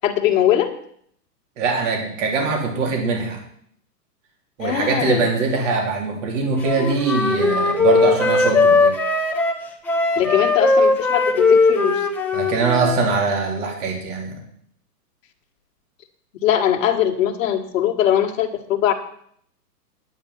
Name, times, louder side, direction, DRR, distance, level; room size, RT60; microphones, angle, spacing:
voice 1, 0.0-0.7 4.6-5.2 10.2-12.0 16.4-18.9, left 11 dB, 55° left, 3 dB, 1.8 m, -20 dB
voice 2, 1.6-3.4 4.6-9.0 12.3-14.4, right 4 dB, 45° right, 1 dB, 3.3 m, -22 dB
Wind instrument woodwind instrument, 6.6-13.0, left 3 dB, 5° left, 0.7 m, -19 dB
9.8 x 9.7 x 5.6 m, 0.66 s
hypercardioid pair, 135°, 48 cm